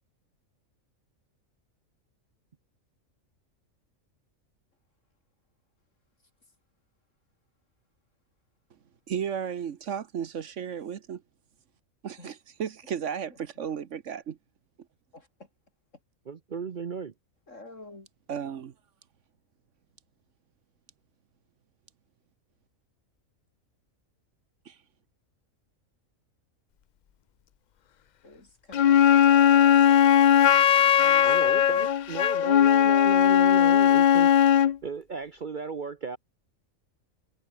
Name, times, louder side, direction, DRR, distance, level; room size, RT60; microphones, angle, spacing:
voice 1, 9.1-11.2 12.0-14.4 18.3-18.7 24.7-24.8, right 8 dB, 65° right, 1.3 m, -34 dB
voice 2, 15.1-15.5 17.5-18.1 28.2-30.2 31.0-31.9, left 2 dB, 65° left, 5.2 m, -48 dB
voice 3, 16.3-17.1 31.2-36.2, right 5 dB, 45° right, 0.8 m, -36 dB
Wind instrument woodwind instrument, 28.7-34.8, left 9 dB, 85° left, 0.4 m, -19 dB
omnidirectional pair, 1.4 m